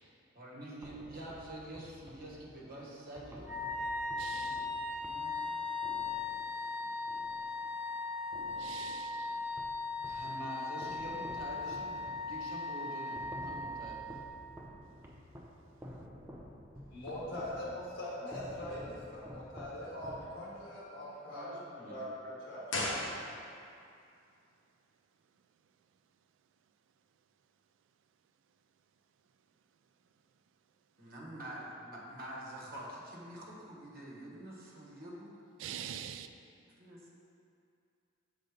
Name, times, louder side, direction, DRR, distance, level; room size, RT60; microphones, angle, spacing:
voice 1, 0.3-3.5 4.3-4.7 5.0-5.7 10.0-14.0 21.3-22.1 31.0-35.3 36.8-37.1, right 1 dB, 50° right, -4 dB, 1.4 m, -46 dB
sound 1, 0.8-7.9 8.3-10.3 10.8-20.7, equal, 10° right, 0.6 m, -51 dB
Wind instrument woodwind instrument, 3.4-14.2, left 3 dB, 85° right, 1.0 m, -38 dB
voice 2, 4.2-4.7 6.9-7.1 8.6-9.4 35.6-36.3, right 9 dB, 70° right, 9 dB, 0.3 m, -45 dB
voice 3, 16.7-21.5 21.9-22.7, left 1 dB, 90° left, -6 dB, 1.4 m, -42 dB
sound 2, 22.7-23.8 24.0-24.1, left 1 dB, 70° left, 1.0 m, -36 dB
6.5 x 3.9 x 5.0 m, 2.5 s
head